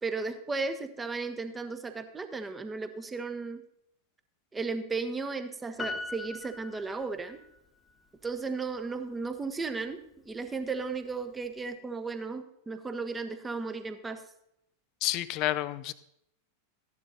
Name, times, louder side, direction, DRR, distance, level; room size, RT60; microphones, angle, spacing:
voice 1, 0.0-3.6 4.5-7.4 8.2-10.0 10.2-14.2, right 4 dB, 15° right, 9 dB, 1.2 m, -35 dB
Piano, 5.8-7.6 7.9-8.0, left 3 dB, 15° left, 1.3 m, -40 dB
voice 2, 15.0-15.9, left 16 dB, 40° left, 15 dB, 0.6 m, -29 dB
14.0 x 11.0 x 4.1 m, 0.77 s
figure-of-eight pair, 90°, 0 cm